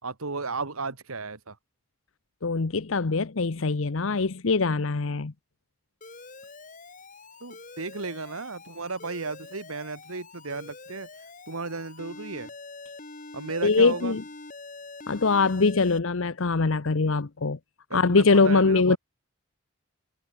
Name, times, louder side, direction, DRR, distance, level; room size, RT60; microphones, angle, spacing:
voice 1, 0.0-1.6 7.4-11.1 11.5-12.5 13.3-14.1 17.9-19.0, right 3 dB, 80° right, 1.8 m, -34 dB
voice 2, 2.4-5.3 13.6-14.2 15.1-17.6 17.9-19.0, left 4 dB, 65° left, 0.8 m, -23 dB
Alarm, 6.0-16.0, left 3 dB, 35° left, 3.3 m, -45 dB
head